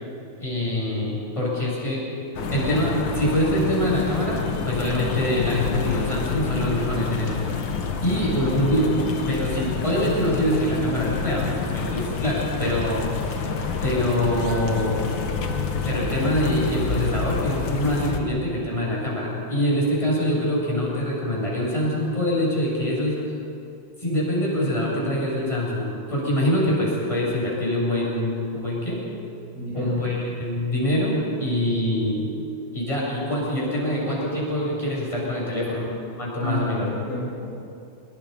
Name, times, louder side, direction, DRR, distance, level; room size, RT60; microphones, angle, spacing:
voice 1, 0.4-2.0 2.5-7.4 8.0-9.0 9.3-11.4 11.7-13.0 13.8-15.0 15.8-23.2 24.0-29.0 29.7-32.3 32.7-35.9 36.2-36.9, equal, 15° left, -5 dB, 7.9 m, -24 dB
sound 1, 2.3-18.2, left 5 dB, 65° left, 2.2 m, -28 dB
voice 2, 29.5-30.0 36.4-37.5, equal, 45° left, -6 dB, 5.7 m, -31 dB
26.0 x 23.0 x 5.6 m, 2.6 s
omnidirectional pair, 2.4 m